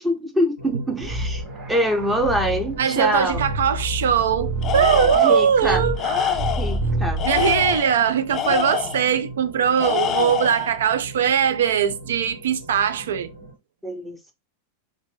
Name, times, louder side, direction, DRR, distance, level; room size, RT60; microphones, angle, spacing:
voice 1, 0.0-1.4 1.7-3.4 5.2-5.8 6.6-7.2 13.8-14.3, equal, 10° right, 0.9 m, -24 dB
sound 1, 0.6-13.5, right 2 dB, 85° right, 2.1 m, -40 dB
sound 2, 1.0-7.9, right 1 dB, 35° right, 1.1 m, -28 dB
voice 2, 2.8-6.0 7.2-13.3, right 8 dB, 60° right, 0.4 m, -20 dB
Tools, 4.6-5.5 6.0-6.8 7.2-9.1 9.8-10.7, left 10 dB, 30° left, 0.4 m, -25 dB
3.3 x 3.1 x 3.2 m
figure-of-eight pair, 90°, 0 cm